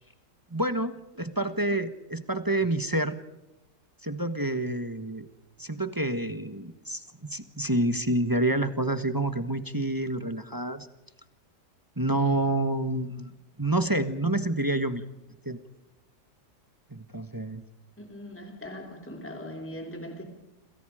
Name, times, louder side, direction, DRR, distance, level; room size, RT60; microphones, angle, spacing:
voice 1, 0.5-3.2 4.0-5.3 5.6-10.9 12.0-13.3 13.6-15.0 15.4-15.6 16.9-17.6, right 1 dB, 15° right, 9 dB, 1.3 m, -28 dB
voice 2, 18.0-20.3, equal, 5° left, 3 dB, 3.2 m, -40 dB
28.0 x 28.0 x 5.1 m, 0.96 s
omnidirectional pair, 1.7 m